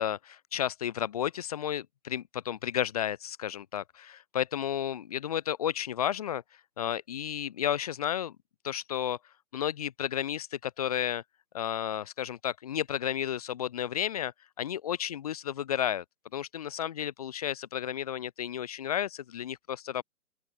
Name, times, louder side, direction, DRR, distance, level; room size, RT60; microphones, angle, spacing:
voice 1, 0.0-6.4 6.8-8.3 8.6-9.2 9.5-11.2 11.5-16.0 16.3-20.0, left 10 dB, 25° left, 1.0 m, -32 dB
open air
figure-of-eight pair, 140°, 45 cm